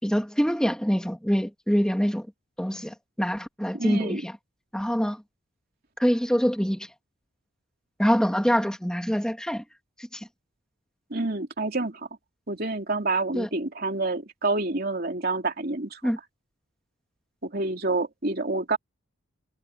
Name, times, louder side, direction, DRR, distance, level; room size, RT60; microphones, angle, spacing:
voice 1, 0.0-2.3 2.6-4.3 4.7-5.2 6.0-6.9 8.0-9.6 10.0-10.3 13.3-13.5 16.0-16.2, equal, 5° left, 2.3 m, -25 dB
voice 2, 3.7-4.2 11.1-12.1 12.5-16.0 17.4-18.8, right 3 dB, 45° right, 3.1 m, -28 dB
head